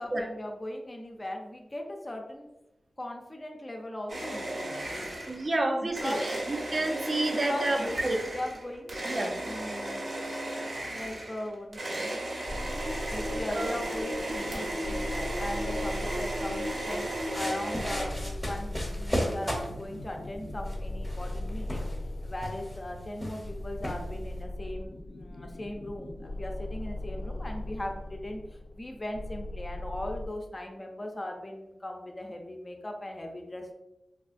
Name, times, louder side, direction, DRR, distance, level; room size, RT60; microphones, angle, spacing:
voice 1, 0.0-2.5 3.0-5.1 5.8-6.3 7.3-9.0 9.4-10.3 10.9-12.0 13.1-21.9 22.2-28.4 28.7-33.7, left 1 dB, 30° left, 2 dB, 0.5 m, -39 dB
sound 1, 4.1-5.5 5.9-18.1, right 1 dB, 65° right, 0.8 m, -35 dB
voice 2, 5.3-8.2 9.0-9.3 13.5-13.8, right 2 dB, 40° right, 3 dB, 0.5 m, -30 dB
sound 2, 12.5-30.3, left 1 dB, 90° left, 0.4 m, -39 dB
sound 3, 16.9-24.4, equal, ahead, 0.8 m, -37 dB
3.5 x 2.3 x 2.5 m, 0.92 s
wide cardioid pair, 90°, 0 cm